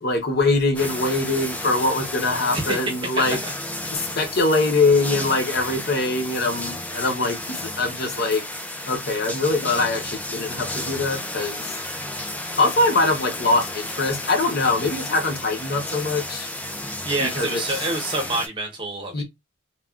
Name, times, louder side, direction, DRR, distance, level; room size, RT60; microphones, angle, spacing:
voice 1, 0.0-3.4 3.9-8.4 8.9-11.7 12.6-16.5 17.2-17.8 19.1-19.2, left 2 dB, 50° left, 0.7 m, -23 dB
sound 1, 0.7-18.5, left 1 dB, 5° left, 0.3 m, -32 dB
voice 2, 2.5-3.2 17.0-19.2, right 2 dB, 25° right, 0.8 m, -27 dB
3.1 x 2.3 x 2.3 m
head